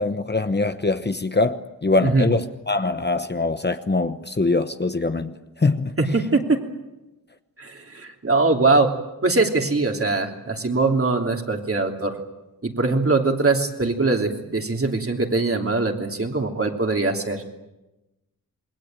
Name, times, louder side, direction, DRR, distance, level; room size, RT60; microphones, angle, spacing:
voice 1, 0.0-6.0, left 3 dB, 30° left, 9 dB, 1.0 m, -23 dB
voice 2, 6.0-6.6 7.6-8.9 9.2-12.1 12.6-17.4, right 3 dB, 40° right, 3 dB, 3.1 m, -22 dB
27.5 x 21.5 x 9.0 m, 1.0 s
wide cardioid pair, 110°, 35 cm